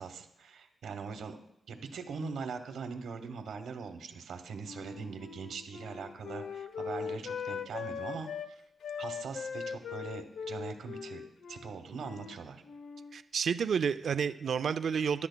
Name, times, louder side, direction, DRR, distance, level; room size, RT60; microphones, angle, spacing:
voice 1, 0.0-1.4 1.7-8.6 9.0-11.2 11.5-12.6, right 5 dB, 90° right, 7 dB, 1.0 m, -41 dB
Wind instrument woodwind instrument, 4.6-8.5 8.8-12.4 12.6-13.2, left 6 dB, 85° left, 0.6 m, -40 dB
voice 2, 13.1-15.3, right 6 dB, 65° right, 12 dB, 0.3 m, -30 dB
15.0 x 11.5 x 2.2 m, 0.83 s
wide cardioid pair, 140°, 0 cm